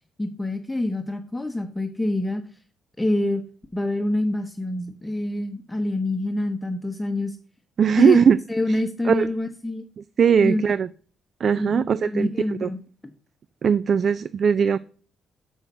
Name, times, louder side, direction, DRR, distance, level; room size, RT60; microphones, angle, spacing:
voice 1, 0.2-2.4 3.0-3.4 3.7-7.4 7.9-8.2 8.5-9.8 10.4-10.6 11.5-12.8, left 1 dB, 10° left, 6 dB, 0.8 m, -26 dB
voice 2, 7.8-8.4 8.7-8.8 9.1-9.3 10.2-10.9 11.4-12.3 12.6-12.7 13.6-14.8, right 7 dB, 50° right, 17 dB, 0.3 m, -19 dB
6.2 x 5.7 x 6.6 m, 0.43 s
cardioid pair, 90°, 0 cm